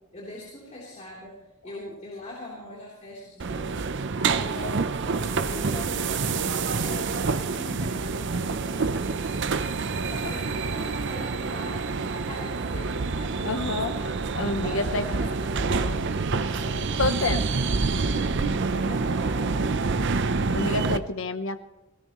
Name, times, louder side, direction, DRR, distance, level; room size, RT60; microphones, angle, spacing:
voice 1, 0.1-11.9 12.1-14.0 14.6-19.9, left 1 dB, 35° left, -5 dB, 3.5 m, -42 dB
sound 1, 3.4-21.0, right 4 dB, 60° right, 0.7 m, -27 dB
voice 2, 13.4-13.9 14.3-15.0 17.0-17.4 20.5-21.6, left 3 dB, 65° left, 10 dB, 0.9 m, -28 dB
18.5 x 18.0 x 3.1 m, 1.0 s
head